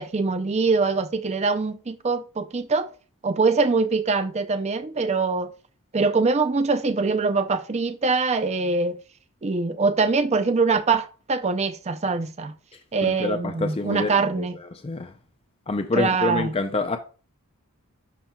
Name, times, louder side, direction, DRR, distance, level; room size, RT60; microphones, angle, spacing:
voice 1, 0.0-2.9 3.2-5.5 5.9-9.0 9.4-12.5 12.9-14.6 15.9-16.5, right 4 dB, 30° right, 0.5 m, -23 dB
voice 2, 13.0-14.1 14.4-14.5 14.8-15.1 15.7-17.0, left 3 dB, 25° left, 0.4 m, -26 dB
11.0 x 4.3 x 2.3 m
head